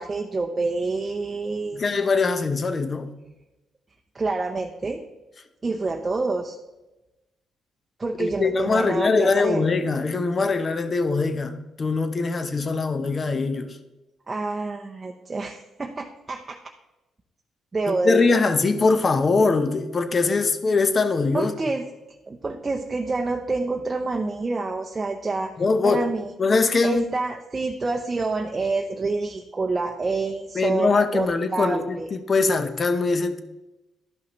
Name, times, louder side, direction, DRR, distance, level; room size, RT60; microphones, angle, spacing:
voice 1, 0.0-1.9 4.1-5.0 5.6-6.6 8.0-9.6 14.3-16.6 17.7-18.4 21.3-21.9 22.3-25.5 25.8-26.3 26.8-32.1, right 3 dB, 25° right, 2 dB, 0.6 m, -27 dB
voice 2, 1.7-3.1 8.2-13.8 17.9-21.5 25.6-26.0 26.4-27.1 30.5-33.4, left 4 dB, 35° left, 9 dB, 0.7 m, -22 dB
12.0 x 5.6 x 3.1 m, 1.0 s
cardioid pair, 90°, 0 cm